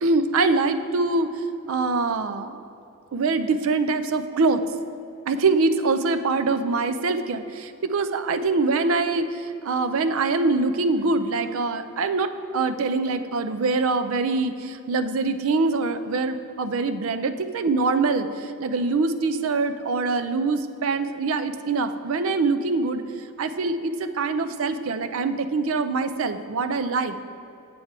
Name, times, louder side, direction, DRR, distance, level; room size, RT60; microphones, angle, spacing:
voice 1, 0.0-2.6 3.1-4.6 5.3-23.0 23.4-27.2, right 3 dB, 70° right, 10 dB, 0.4 m, -24 dB
7.8 x 7.3 x 4.7 m, 2.8 s
head